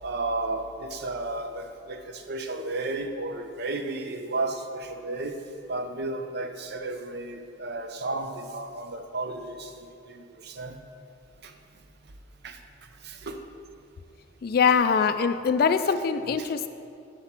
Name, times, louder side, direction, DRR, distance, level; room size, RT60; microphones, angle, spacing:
voice 1, 0.0-5.4 5.7-9.7 10.1-10.8 11.4-11.5 12.4-12.6 13.0-13.4 16.4-16.5, right 2 dB, 55° right, 6 dB, 0.6 m, -33 dB
voice 2, 14.4-16.7, left 6 dB, 50° left, 10 dB, 0.3 m, -23 dB
9.9 x 4.3 x 5.9 m, 2.5 s
head